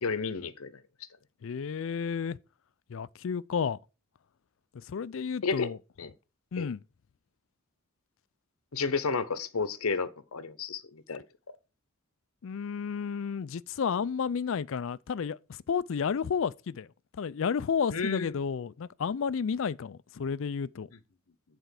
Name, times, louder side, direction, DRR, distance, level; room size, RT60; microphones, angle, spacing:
voice 1, 0.0-0.7 5.4-5.7 6.0-6.1 6.6-6.7 8.7-11.2 17.9-18.3, left 4 dB, 80° left, 0.8 m, -31 dB
voice 2, 1.4-2.4 2.9-3.8 4.7-5.8 6.5-6.8 12.4-16.9 17.2-20.9, left 6 dB, 60° left, 0.4 m, -31 dB
8.2 x 4.4 x 6.4 m
head